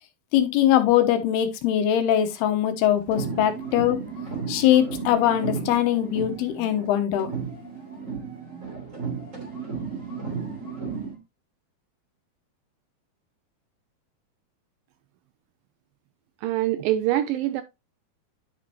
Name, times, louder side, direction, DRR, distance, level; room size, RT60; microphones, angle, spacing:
voice 1, 0.3-4.0 4.5-7.3, left 11 dB, 90° left, 3.0 m, -22 dB
sound 1, 3.0-6.9 7.2-11.2, right 5 dB, 20° right, 2.8 m, -34 dB
voice 2, 16.4-17.6, right 13 dB, 85° right, 2.0 m, -24 dB
10.5 x 5.3 x 2.9 m
omnidirectional pair, 4.4 m